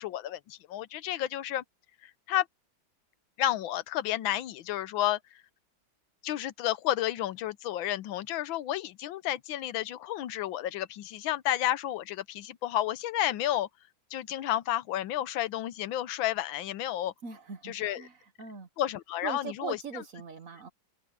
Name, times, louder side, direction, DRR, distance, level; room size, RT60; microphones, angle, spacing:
voice 1, 0.0-1.6 2.0-2.5 3.4-5.2 6.2-13.7 14.1-17.1 17.6-18.0 18.8-20.0, left 13 dB, 85° left, 1.5 m, -31 dB
voice 2, 17.2-18.1 18.4-18.7 19.2-20.7, right 6 dB, 45° right, 1.4 m, -40 dB
omnidirectional pair, 2.2 m